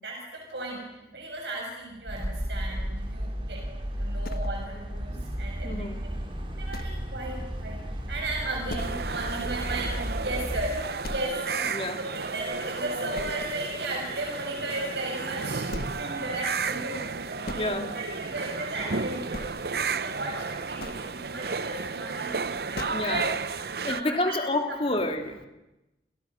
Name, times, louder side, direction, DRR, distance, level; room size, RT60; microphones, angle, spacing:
voice 1, 0.0-3.7 4.0-5.9 6.6-7.8 8.1-17.0 17.3-19.5 20.0-22.9 23.9-24.4 24.9-25.0, right 2 dB, 75° right, -1 dB, 7.3 m, -35 dB
sound 1, 2.1-10.7, equal, 30° right, 3.6 m, -33 dB
sound 2, 4.2-5.0 5.4-5.5 6.0-6.1 6.7-7.2 7.5-7.6 8.0-8.1 8.7-9.2 9.6-9.7 10.2-10.3 11.0-11.6 12.0-12.7 13.1-13.6 15.0-15.1 15.6-16.1 17.1-17.7 18.7-18.9 19.2-19.9 20.5-21.1 22.4-22.5 22.8-23.3, left 1 dB, 55° left, 1.6 m, -39 dB
voice 2, 5.6-6.0 11.7-12.0 17.5-17.9 22.9-25.4, left 2 dB, 30° left, 5 dB, 2.6 m, -29 dB
sound 3, 8.8-24.0, right 4 dB, 60° right, 0.8 m, -33 dB
29.0 x 29.0 x 6.4 m, 1.0 s
head